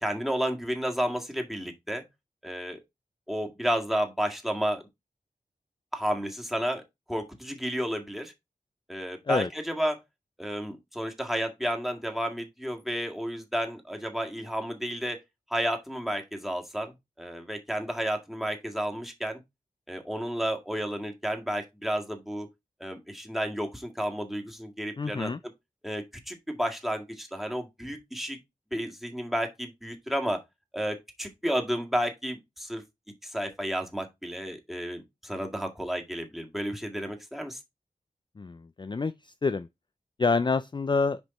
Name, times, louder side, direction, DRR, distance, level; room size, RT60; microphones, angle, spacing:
voice 1, 0.0-2.0 2.4-2.8 3.3-4.9 5.9-6.8 7.1-8.3 8.9-10.0 10.4-15.2 15.5-16.9 17.2-19.4 19.9-22.5 22.8-25.3 25.8-28.4 28.7-30.4 30.7-32.8 33.2-37.6, equal, ahead, 1.9 m, -31 dB
voice 2, 25.0-25.4 38.4-39.7 40.2-41.2, left 4 dB, 30° left, 0.4 m, -27 dB
6.4 x 5.1 x 4.2 m
wide cardioid pair, 65°, 15 cm